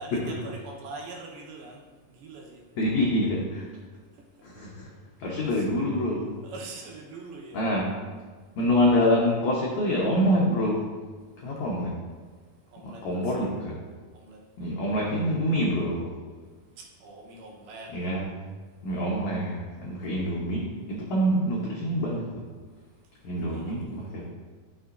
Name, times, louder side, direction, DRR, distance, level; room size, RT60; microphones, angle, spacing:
voice 1, 0.0-2.6 4.1-4.3 5.4-5.7 6.4-7.8 12.7-13.5 14.1-14.5 14.8-14.9 16.8-18.0 23.4-24.1, right 3 dB, 75° right, -1 dB, 2.7 m, -43 dB
voice 2, 2.8-3.7 4.4-4.9 5.2-6.3 7.5-7.9 8.6-10.9 11.4-12.0 12.8-13.8 14.6-16.1 17.9-18.3 18.8-22.4 23.2-24.3, equal, 80° left, -4 dB, 1.6 m, -26 dB
11.0 x 6.1 x 2.6 m, 1.5 s
omnidirectional pair, 4.7 m